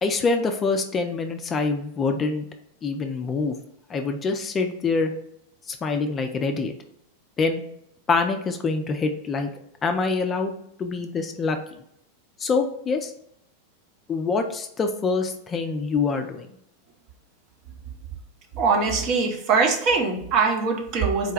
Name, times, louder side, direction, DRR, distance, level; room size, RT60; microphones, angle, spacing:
voice 1, 0.0-2.5 2.8-3.6 3.9-5.1 5.7-6.7 7.4-7.6 8.1-9.5 9.8-10.5 10.8-11.8 12.4-13.1 14.1-16.5, left 4 dB, 20° left, 5 dB, 0.4 m, -25 dB
voice 2, 18.6-21.3, right 4 dB, 40° right, 3 dB, 0.7 m, -22 dB
4.0 x 2.2 x 4.5 m, 0.75 s
figure-of-eight pair, 90°, 0 cm